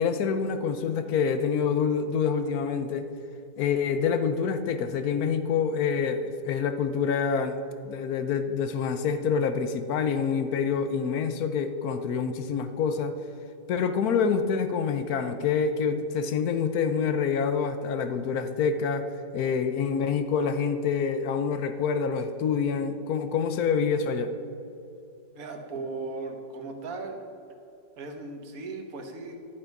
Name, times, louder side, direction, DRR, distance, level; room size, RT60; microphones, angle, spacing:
voice 1, 0.0-3.1 3.6-7.6 7.8-13.1 13.7-19.1 19.3-24.3, left 6 dB, 70° left, 9 dB, 1.1 m, -26 dB
voice 2, 25.3-27.2 28.0-29.4, right 3 dB, 60° right, 5 dB, 1.5 m, -37 dB
11.5 x 7.2 x 5.3 m, 2.7 s
omnidirectional pair, 1.8 m